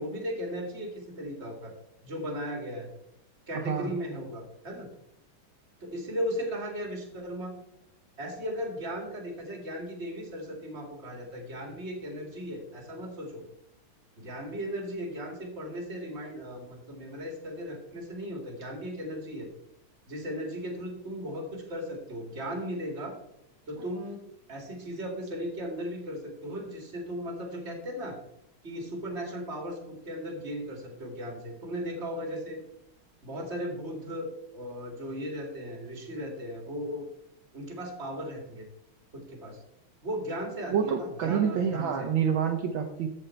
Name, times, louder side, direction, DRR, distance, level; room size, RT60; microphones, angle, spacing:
voice 1, 0.0-1.7 2.0-2.9 3.5-4.9 5.8-7.6 8.2-13.4 14.2-19.5 20.1-23.1 23.7-24.2 24.5-28.2 28.6-32.6 33.2-34.3 34.5-37.0 37.5-38.7 39.1-39.6 40.0-42.1, equal, 30° right, 2 dB, 2.3 m, -36 dB
voice 2, 3.5-3.9 40.7-43.1, right 7 dB, 70° right, 4 dB, 1.5 m, -27 dB
14.5 x 5.0 x 4.4 m, 0.82 s
omnidirectional pair, 2.3 m